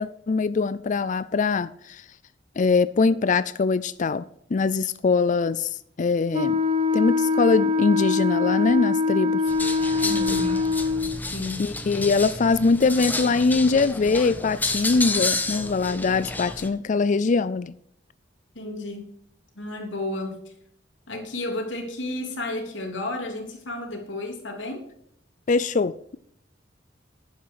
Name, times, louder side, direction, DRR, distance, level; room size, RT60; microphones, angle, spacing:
voice 1, 0.0-2.0 2.6-4.2 4.5-6.6 6.9-9.4 11.6-17.7 25.5-25.9, left 4 dB, 45° left, 0.4 m, -22 dB
Wind instrument woodwind instrument, 6.3-11.2, left 4 dB, 35° right, 1.1 m, -23 dB
sound 1, 9.5-16.7, left 2 dB, 10° left, 1.2 m, -30 dB
voice 2, 10.0-10.6 11.2-11.6 18.5-19.0 19.5-20.4 21.1-24.8, left 2 dB, 90° left, 3.2 m, -32 dB
11.0 x 9.6 x 4.8 m
head